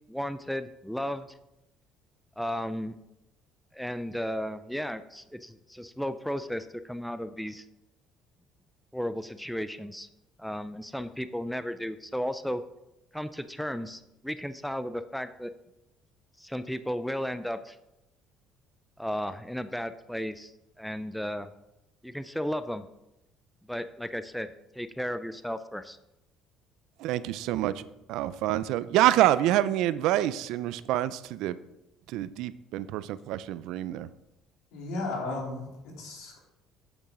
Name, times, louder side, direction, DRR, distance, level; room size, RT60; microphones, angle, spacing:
voice 1, 0.1-1.3 2.4-3.0 3.7-7.6 8.9-10.1 10.4-12.6 13.1-15.5 16.4-17.8 19.0-20.5 20.8-21.5 22.0-22.9 23.7-24.5 24.8-26.0, equal, ahead, 11 dB, 0.4 m, -34 dB
voice 2, 27.0-27.8 28.1-31.6 32.1-34.1, right 13 dB, 75° right, 16 dB, 0.5 m, -27 dB
voice 3, 34.7-36.4, left 2 dB, 85° left, -1 dB, 3.0 m, -35 dB
8.2 x 7.1 x 5.0 m, 0.90 s
cardioid pair, 130°, 0 cm